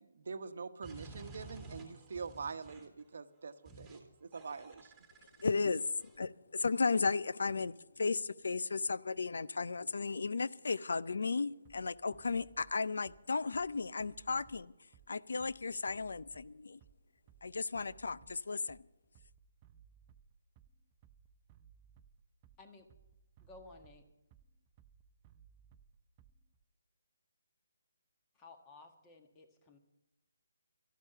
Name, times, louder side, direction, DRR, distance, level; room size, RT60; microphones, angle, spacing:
voice 1, 0.0-4.9, right 5 dB, 60° right, 10 dB, 1.0 m, -44 dB
sound 1, 0.8-3.0 3.7-4.0 4.3-6.2, right 3 dB, 5° right, 2.2 m, -53 dB
voice 2, 5.4-14.7 15.1-16.8 17.4-18.9, left 4 dB, 75° left, 17 dB, 0.4 m, -35 dB
Bass drum, 11.6-26.6, right 8 dB, 20° right, 0.5 m, -63 dB
voice 3, 23.4-24.0 28.4-29.8, left 3 dB, 15° left, 6 dB, 1.4 m, -56 dB
12.5 x 12.0 x 6.7 m, 0.92 s
hypercardioid pair, 160°, 0 cm